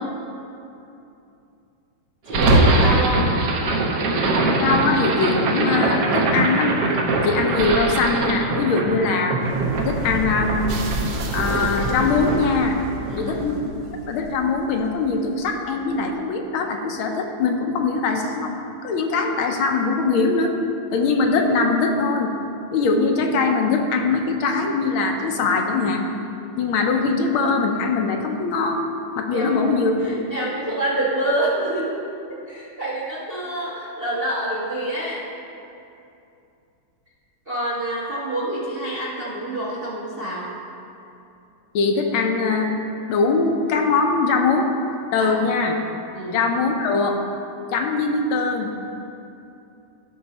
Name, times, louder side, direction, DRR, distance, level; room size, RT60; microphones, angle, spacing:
voice 1, 2.2-3.2 8.8-9.1 13.1-13.5 29.3-29.6 30.0-32.0 32.3-35.2 37.5-40.5 45.2-45.4 46.1-46.4, right 1 dB, 35° right, -5 dB, 1.0 m, -27 dB
sound 1, 2.3-14.5, right 2 dB, 60° right, 1.3 m, -22 dB
voice 2, 4.4-6.7 7.2-9.4 9.8-10.8 11.3-12.8 13.2-13.7 14.1-18.6 18.8-20.5 20.9-22.3 22.7-26.1 26.6-28.8 29.2-30.0 41.7-42.8 43.1-44.7 45.1-45.8 46.3-47.2 47.7-48.7, left 4 dB, 75° left, 3 dB, 1.6 m, -21 dB
13.5 x 5.4 x 4.1 m, 2.7 s
omnidirectional pair, 2.3 m